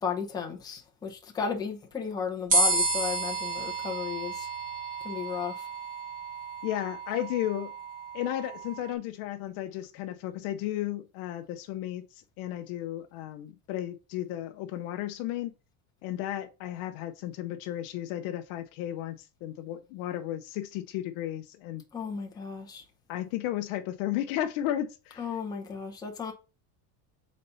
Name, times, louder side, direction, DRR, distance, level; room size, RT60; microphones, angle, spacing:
voice 1, 0.0-4.5 5.0-5.7 21.9-22.8 25.2-26.3, left 6 dB, 10° left, 0.7 m, -34 dB
sound 1, 2.5-8.9, right 2 dB, 20° right, 1.2 m, -31 dB
voice 2, 6.6-7.7 8.1-15.5 16.0-21.8 23.1-25.2, left 13 dB, 50° left, 0.6 m, -34 dB
4.2 x 4.1 x 5.5 m
cardioid pair, 180°, 44 cm